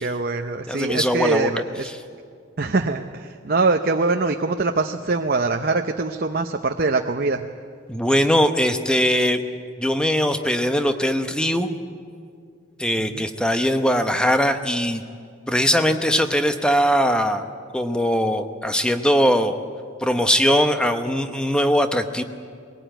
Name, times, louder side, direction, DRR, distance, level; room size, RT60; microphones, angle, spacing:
voice 1, 0.0-1.9 2.6-7.5 13.1-13.2, right 3 dB, 45° right, 5 dB, 0.7 m, -23 dB
voice 2, 0.7-1.5 7.9-9.4 9.8-11.8 12.8-15.0 15.5-17.5 17.7-19.6 20.0-22.2, equal, 5° left, 7 dB, 0.9 m, -20 dB
21.5 x 18.0 x 9.0 m, 2.3 s
head